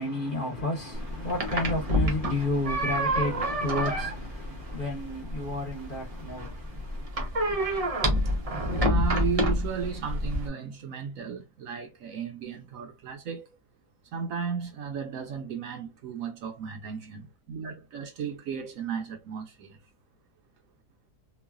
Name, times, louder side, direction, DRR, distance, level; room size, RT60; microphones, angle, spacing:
voice 1, 0.0-7.1, left 2 dB, 40° left, 0.8 m, -32 dB
sound 1, 0.9-10.5, equal, 45° right, 0.5 m, -28 dB
voice 2, 8.8-13.6 14.1-19.8, right 6 dB, 65° right, 0.9 m, -35 dB
3.0 x 2.3 x 2.3 m
omnidirectional pair, 1.7 m